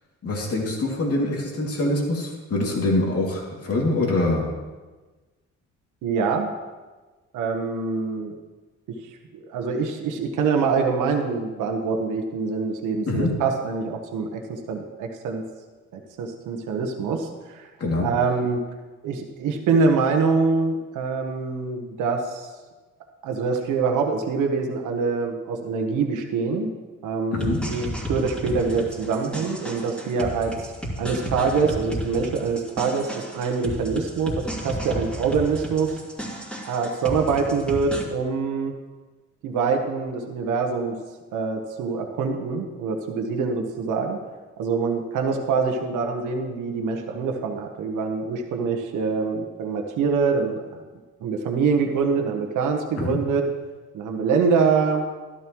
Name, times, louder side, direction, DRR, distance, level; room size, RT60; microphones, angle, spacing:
voice 1, 0.2-4.5 13.1-13.4 17.8-18.1 27.3-27.6 53.0-53.2, left 2 dB, 50° left, -1 dB, 2.6 m, -24 dB
voice 2, 6.0-6.5 7.3-8.3 9.3-15.4 15.9-17.7 18.0-18.6 19.0-22.5 23.2-26.7 27.0-30.7 31.0-36.0 36.6-38.7 39.4-41.0 41.3-44.2 44.6-50.8 51.2-53.5 53.9-55.1, right 5 dB, 85° right, 3 dB, 1.2 m, -25 dB
sound 1, 27.4-38.0, equal, 5° left, 2.8 m, -33 dB
12.5 x 12.5 x 3.1 m, 1.3 s
cardioid pair, 90°, 30 cm